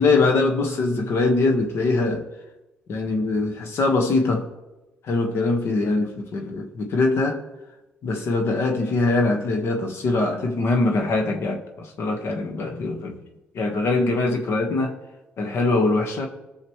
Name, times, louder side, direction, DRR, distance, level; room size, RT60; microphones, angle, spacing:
voice 1, 0.0-2.3 2.9-4.5 5.0-7.4 8.0-13.2 13.5-14.9 15.4-16.3, left 3 dB, 65° left, 1.5 m, -22 dB
18.0 x 6.4 x 3.2 m
supercardioid pair, 65°, 4 cm